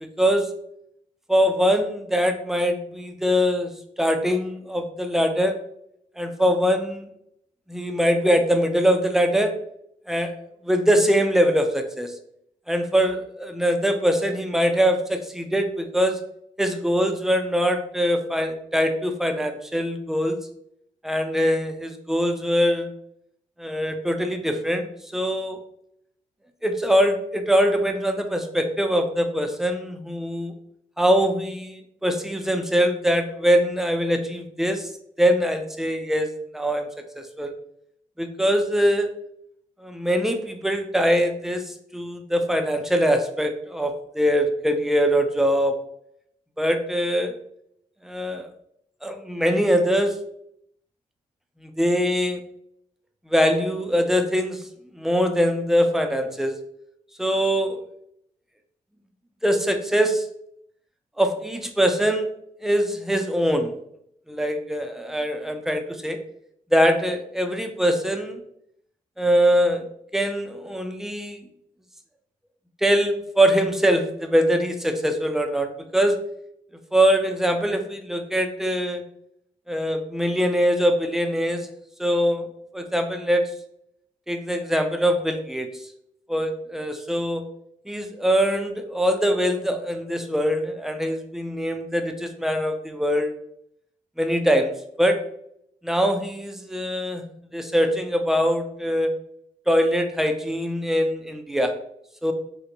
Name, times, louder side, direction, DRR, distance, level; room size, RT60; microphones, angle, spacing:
voice 1, 0.0-0.5 1.3-3.7 4.0-5.6 6.2-7.1 7.7-9.5 10.1-10.3 10.6-12.1 12.7-16.2 16.6-20.4 21.0-22.9 23.6-25.6 26.6-30.5 31.0-34.9 35.2-37.5 38.2-39.1 39.8-45.8 46.6-47.3 48.0-48.5 49.0-50.2 51.6-52.4 53.3-54.6 55.0-56.5 57.2-57.8 59.4-60.3 61.2-62.3 62.6-63.7 64.3-66.2 66.7-68.4 69.2-69.9 70.1-71.4 72.8-76.2 76.9-79.0 79.7-81.7 82.0-82.5 82.7-83.5 84.3-85.7 86.3-87.4 87.9-93.3 94.2-94.7 95.0-95.2 95.8-97.2 97.5-99.1 99.7-101.7 102.2-102.3, equal, 5° right, 6 dB, 0.4 m, -22 dB
3.9 x 2.1 x 2.7 m, 0.73 s
cardioid pair, 90°, 13 cm